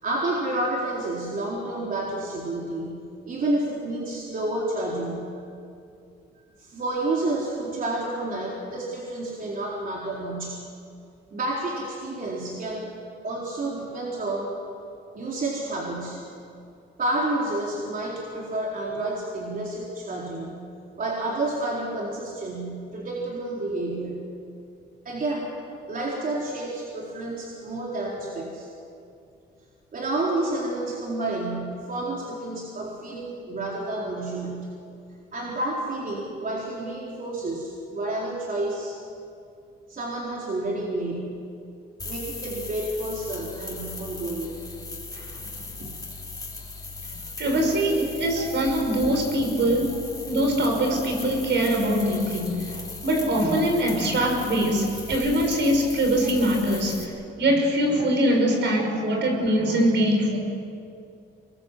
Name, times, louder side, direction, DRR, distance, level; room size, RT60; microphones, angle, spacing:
voice 1, 0.0-5.3 6.6-10.6 11.3-13.0 13.2-14.5 15.1-16.2 17.0-20.7 21.0-24.2 25.0-25.5 25.9-28.7 29.9-34.7 35.3-39.0 39.9-41.4 42.0-44.5 45.8-46.0 48.0-48.1 48.3-48.4 49.5-49.6 50.8-51.0 60.0-60.1, right 2 dB, 45° right, -3 dB, 4.3 m, -30 dB
sound 1, 42.0-57.0, left 3 dB, 20° left, 4.5 m, -38 dB
voice 2, 47.4-57.1 57.4-60.4, equal, 65° right, 3 dB, 6.3 m, -23 dB
26.0 x 22.0 x 7.6 m, 2.5 s
cardioid pair, 90°, 20 cm